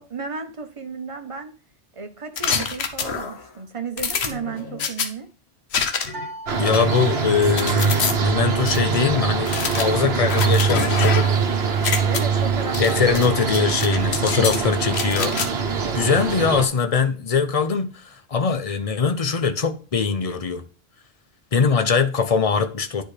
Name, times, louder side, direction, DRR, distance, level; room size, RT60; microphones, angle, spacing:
voice 1, 0.0-1.5 1.9-5.3 12.1-13.7 14.3-14.7 15.7-16.0, right 5 dB, 30° right, 0.9 m, -34 dB
sound 1, 2.4-3.5 4.0-5.1 5.7-6.3 6.6-8.1 8.7-8.8 9.4-11.4 11.7-12.2 12.7-13.3 13.5-14.6 14.9-15.5, left 6 dB, 70° left, 1.1 m, -26 dB
sound 2, 6.1-7.6, right 1 dB, 90° right, 1.2 m, -39 dB
sound 3, 6.5-16.7, right 6 dB, 70° right, 1.2 m, -23 dB
voice 2, 6.6-11.4 12.8-15.4 15.9-20.6 21.5-23.0, left 5 dB, 40° left, 0.7 m, -22 dB
10.0 x 4.3 x 3.3 m
omnidirectional pair, 1.1 m